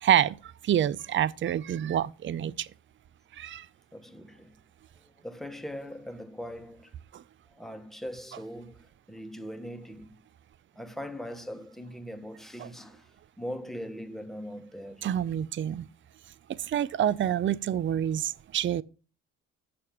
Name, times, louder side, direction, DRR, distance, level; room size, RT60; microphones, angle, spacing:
voice 1, 0.0-2.7 3.3-3.7 7.1-7.2 12.6-12.7 15.0-15.9 16.6-18.8, right 10 dB, 40° right, 0.5 m, -27 dB
voice 2, 3.9-4.6 5.0-6.9 7.5-10.2 10.7-15.1, equal, ahead, 1.2 m, -41 dB
6.8 x 6.7 x 5.7 m
cardioid pair, 90°, 30 cm